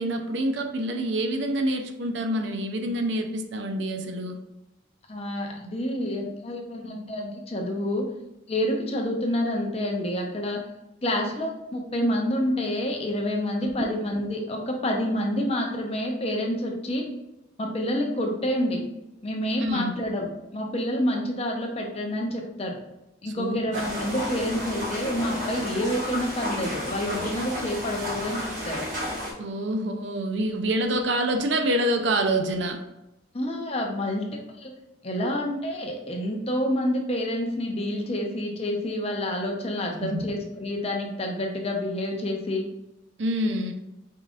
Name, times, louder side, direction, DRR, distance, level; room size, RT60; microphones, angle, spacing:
voice 1, 0.0-4.4 13.6-13.9 19.6-19.9 23.3-23.8 29.4-32.8 40.0-40.2 43.2-43.7, right 1 dB, 65° right, 5 dB, 0.5 m, -27 dB
voice 2, 5.1-8.0 8.5-10.6 11.0-17.0 17.6-18.8 19.2-22.7 23.2-28.8 33.3-34.3 34.6-34.7 35.0-42.7, left 1 dB, 30° left, 1 dB, 0.7 m, -28 dB
sound 1, 23.7-29.3, left 1 dB, 45° right, 1.6 m, -32 dB
5.3 x 3.8 x 2.4 m, 0.92 s
head